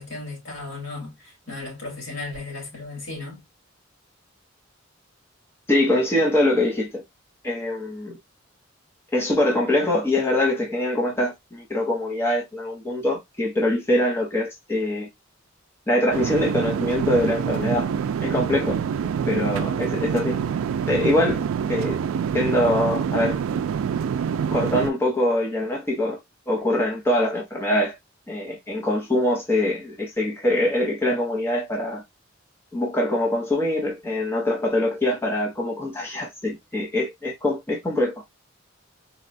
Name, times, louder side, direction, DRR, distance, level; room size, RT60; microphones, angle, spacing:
voice 1, 0.0-3.4, left 3 dB, 70° left, 2.2 m, -35 dB
voice 2, 5.7-7.0 7.4-8.2 9.1-15.1 15.9-17.9 18.2-18.8 19.3-20.4 20.9-22.0 22.3-23.4 24.5-26.2 26.5-28.0 28.3-32.0 32.7-38.4, left 1 dB, 10° left, 0.7 m, -23 dB
sound 1, 16.1-24.9, right 7 dB, 90° right, 0.3 m, -26 dB
4.0 x 2.2 x 2.6 m
head